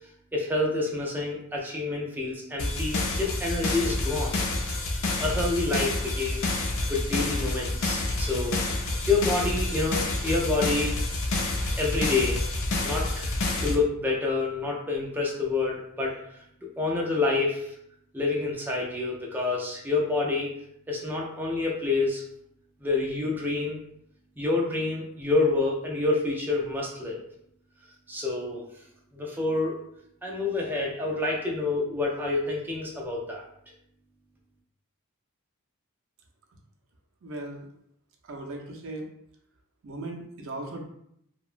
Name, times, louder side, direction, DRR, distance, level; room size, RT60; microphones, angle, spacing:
voice 1, 0.3-4.4 5.2-10.9 11.8-12.4 12.8-13.3 13.6-16.2 16.8-17.7 18.1-20.5 20.9-22.2 22.8-23.8 24.4-27.2 28.1-28.7 29.1-29.8 30.2-33.4, left 3 dB, 10° right, -3 dB, 0.4 m, -28 dB
sound 1, 2.6-13.8, left 2 dB, 65° left, 0.5 m, -28 dB
voice 2, 37.2-37.7 38.2-39.1 39.8-40.8, right 2 dB, 65° right, 1 dB, 0.5 m, -37 dB
2.8 x 2.1 x 2.4 m, 0.73 s
head